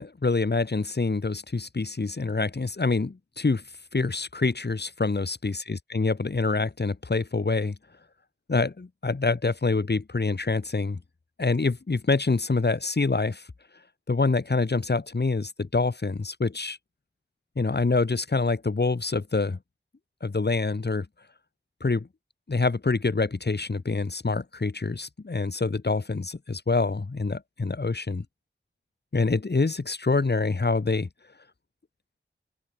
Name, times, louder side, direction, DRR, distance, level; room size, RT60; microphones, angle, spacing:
voice 1, 0.0-3.6 3.9-7.8 8.5-11.0 11.4-13.5 14.1-16.8 17.6-19.6 20.2-21.1 21.8-22.1 22.5-28.2 29.1-31.1, left 3 dB, 55° left, 6.4 m, -26 dB
open air
wide cardioid pair, 90°, 20 cm